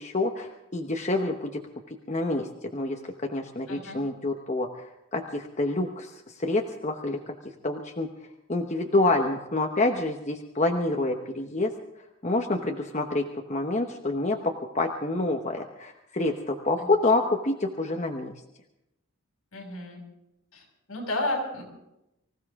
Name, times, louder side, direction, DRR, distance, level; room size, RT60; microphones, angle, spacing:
voice 1, 0.0-1.5 2.1-4.7 5.1-6.1 6.4-7.3 7.6-8.1 8.5-11.7 12.2-18.3, left 2 dB, 30° left, 2 dB, 1.0 m, -27 dB
voice 2, 3.7-4.0 16.8-16.9 19.5-20.0 20.5-21.6, left 1 dB, 75° left, 1 dB, 6.3 m, -32 dB
25.0 x 15.5 x 3.7 m, 0.87 s
head